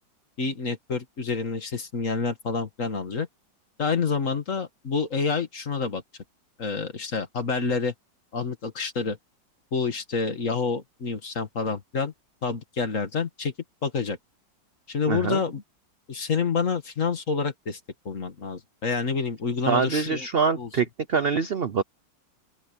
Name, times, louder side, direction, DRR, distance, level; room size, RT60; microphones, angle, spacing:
voice 1, 0.4-3.3 3.8-6.0 6.6-7.9 8.3-9.2 9.7-12.1 12.4-13.5 13.8-14.2 14.9-15.6 16.1-17.8 18.1-20.3 20.6-20.7, left 5 dB, 45° left, 2.2 m, -28 dB
voice 2, 15.1-15.4 19.7-21.8, right 6 dB, 60° right, 0.6 m, -24 dB
open air
omnidirectional pair, 2.0 m